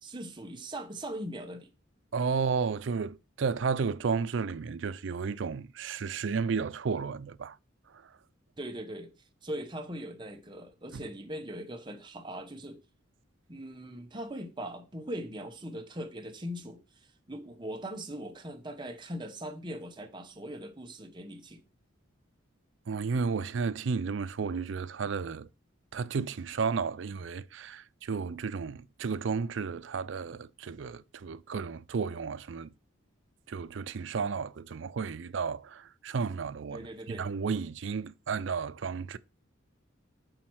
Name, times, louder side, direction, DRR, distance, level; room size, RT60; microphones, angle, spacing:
voice 1, 0.0-1.7 8.6-9.1 9.4-12.8 13.5-21.6 36.7-37.3, right 1 dB, 25° right, 1.0 m, -40 dB
voice 2, 2.1-7.6 10.9-11.0 22.9-25.5 25.9-32.7 33.5-39.2, right 5 dB, 65° right, 0.4 m, -33 dB
7.7 x 4.3 x 6.2 m
head